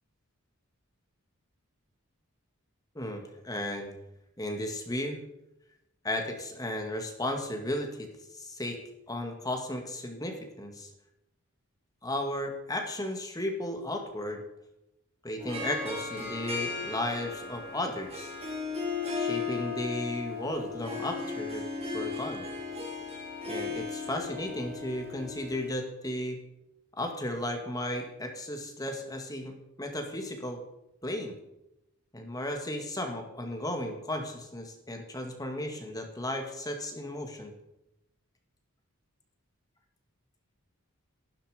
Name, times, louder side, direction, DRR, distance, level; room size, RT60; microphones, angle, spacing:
voice 1, 3.0-3.9 4.4-5.2 6.0-8.8 9.1-10.9 12.0-14.4 15.2-18.3 19.1-21.7 21.9-22.4 23.4-26.4 26.9-30.6 31.0-31.4 32.1-37.5, left 1 dB, 15° left, 4 dB, 2.0 m, -35 dB
Harp, 15.4-25.7, left 4 dB, 30° right, 3.6 m, -36 dB
14.5 x 13.0 x 5.1 m, 0.86 s
head